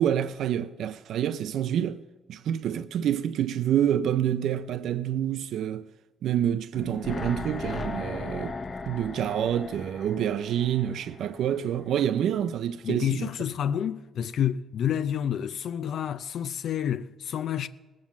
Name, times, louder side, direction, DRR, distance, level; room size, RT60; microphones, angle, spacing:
voice 1, 0.0-2.0 2.3-5.8 6.2-8.5 8.9-13.3, right 10 dB, 75° right, 0.4 m, -27 dB
sound 1, 6.7-11.9 12.2-12.3, left 3 dB, 35° left, 1.1 m, -37 dB
voice 2, 12.8-17.7, left 9 dB, 70° left, 0.4 m, -29 dB
18.0 x 7.5 x 7.2 m
cardioid pair, 90°, 0 cm